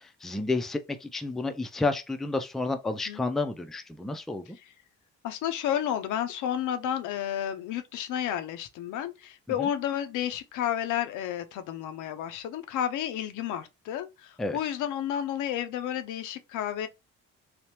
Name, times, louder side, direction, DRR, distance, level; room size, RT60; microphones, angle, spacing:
voice 1, 0.0-4.6 14.4-14.6, left 3 dB, ahead, 0.3 m, -30 dB
voice 2, 5.2-16.9, left 10 dB, 85° left, 0.5 m, -31 dB
3.2 x 2.0 x 2.8 m
cardioid pair, 90°, 30 cm